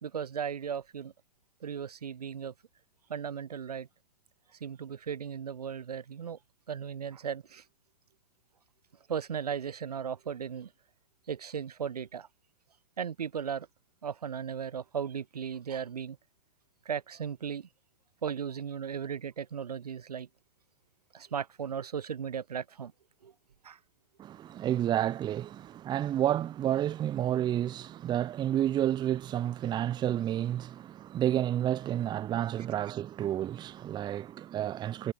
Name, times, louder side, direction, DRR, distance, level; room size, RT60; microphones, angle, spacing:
voice 1, 0.0-1.1 1.6-2.5 3.1-3.9 4.6-6.4 6.7-7.6 9.1-10.7 11.3-12.3 13.0-13.7 14.0-16.2 16.9-17.7 18.2-20.3 21.1-22.9 23.2-23.3 23.6-23.8, right 7 dB, 80° right, 1.8 m, -36 dB
voice 2, 24.2-35.1, right 11 dB, 20° right, 0.9 m, -30 dB
hypercardioid pair, 115°, 20 cm